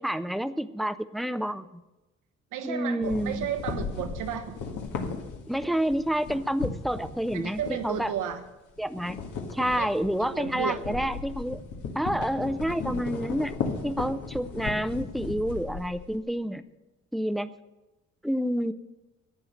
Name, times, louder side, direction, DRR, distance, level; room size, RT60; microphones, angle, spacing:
voice 1, 0.0-1.7 2.6-3.5 5.5-8.1 8.8-9.2 9.5-11.6 12.0-13.5 13.8-16.6 17.1-17.5 18.2-18.7, equal, ahead, 13 dB, 0.5 m, -29 dB
voice 2, 2.5-4.6 7.3-8.4 9.8-9.9 10.2-10.8, right 8 dB, 85° right, 7 dB, 1.3 m, -33 dB
sound 1, 3.0-8.5 8.8-16.2, left 5 dB, 85° left, 1.7 m, -36 dB
11.5 x 8.7 x 6.5 m, 1.0 s
cardioid pair, 90°, 30 cm